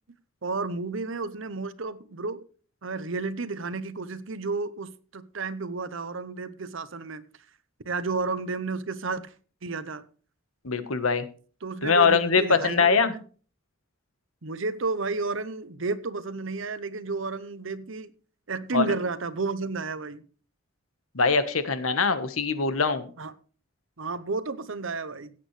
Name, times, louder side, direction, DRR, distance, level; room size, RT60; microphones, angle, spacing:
voice 1, 0.4-2.4 2.8-7.2 7.8-9.3 9.6-10.0 11.6-13.2 14.4-18.1 18.5-20.2 23.2-23.3 24.0-25.3, right 3 dB, 70° right, 0.9 m, -32 dB
voice 2, 10.6-11.3 11.8-13.1 18.7-18.8 21.1-23.1, left 5 dB, 85° left, 1.3 m, -22 dB
16.5 x 8.5 x 3.3 m
head